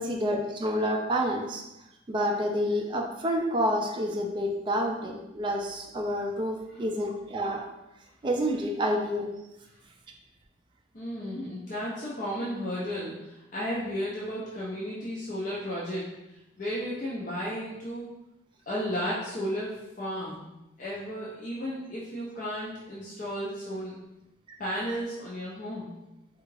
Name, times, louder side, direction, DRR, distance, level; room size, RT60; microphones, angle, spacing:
voice 1, 0.0-1.6 2.1-7.7 8.2-9.3, equal, 25° right, 1 dB, 0.3 m, -28 dB
voice 2, 10.9-16.1 16.6-18.1 18.7-20.5 20.8-23.9 24.6-25.9, equal, 40° left, -6 dB, 0.5 m, -34 dB
3.5 x 2.4 x 3.2 m, 0.92 s
head